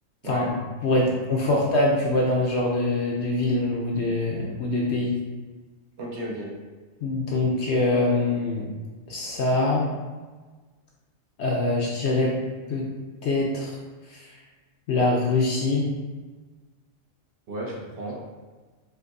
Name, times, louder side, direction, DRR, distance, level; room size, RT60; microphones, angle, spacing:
voice 1, 0.8-5.1 7.0-8.7 9.1-9.9 11.4-12.3 12.7-12.8 13.2-13.7 14.1-14.3 14.9-15.9, left 2 dB, 65° left, -2 dB, 0.7 m, -24 dB
voice 2, 6.0-6.5 17.5-18.2, right 1 dB, 60° right, -3 dB, 0.8 m, -34 dB
4.5 x 2.6 x 2.5 m, 1.3 s
omnidirectional pair, 1.5 m